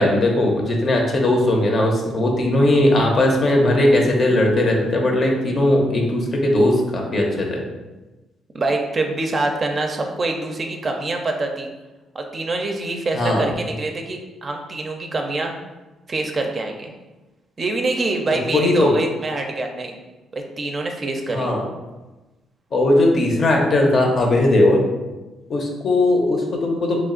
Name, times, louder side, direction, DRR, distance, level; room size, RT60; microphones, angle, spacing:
voice 1, 0.0-7.6 13.1-13.5 18.4-18.9 21.3-21.6 22.7-24.8 25.5-27.0, left 1 dB, 50° left, 1 dB, 0.7 m, -18 dB
voice 2, 8.5-11.7 12.1-15.5 16.1-16.9 17.6-20.0 20.3-21.5, right 2 dB, 35° right, 3 dB, 0.5 m, -25 dB
3.1 x 2.3 x 3.7 m, 1.1 s
cardioid pair, 90°, 0 cm